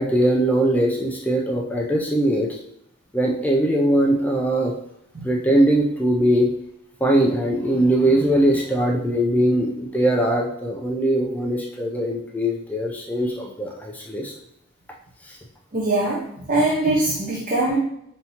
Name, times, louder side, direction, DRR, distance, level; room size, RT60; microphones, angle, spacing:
voice 1, 0.0-2.6 3.1-4.7 5.2-6.5 7.0-14.3 15.2-15.4, right 1 dB, 5° left, -1 dB, 0.3 m, -21 dB
voice 2, 15.7-17.8, right 2 dB, 40° right, -4 dB, 0.7 m, -22 dB
5.6 x 2.7 x 2.8 m, 0.75 s
head